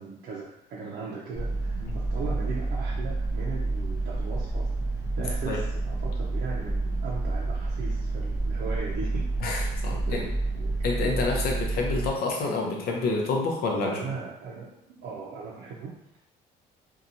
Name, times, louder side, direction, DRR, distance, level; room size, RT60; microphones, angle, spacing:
voice 1, 0.0-9.2 9.9-10.7 13.8-14.7 15.0-16.2, right 4 dB, 70° right, -5 dB, 0.5 m, -38 dB
sound 1, 1.3-12.1, right 2 dB, 15° right, 0.7 m, -29 dB
voice 2, 9.4-10.2 10.8-14.0, left 3 dB, 65° left, 0 dB, 0.6 m, -28 dB
2.7 x 2.3 x 2.5 m, 0.82 s
cardioid pair, 110°, 17 cm